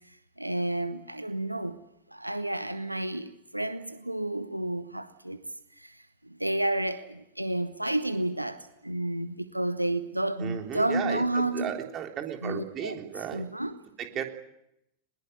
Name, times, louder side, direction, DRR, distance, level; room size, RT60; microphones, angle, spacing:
voice 1, 0.4-1.8 2.1-5.4 5.8-11.7 12.4-13.8, right 1 dB, 85° right, 1.1 m, -31 dB
voice 2, 10.4-13.4 14.0-14.2, right 9 dB, 30° right, 3.6 m, -34 dB
21.5 x 21.0 x 9.6 m
figure-of-eight pair, 90°, 0 cm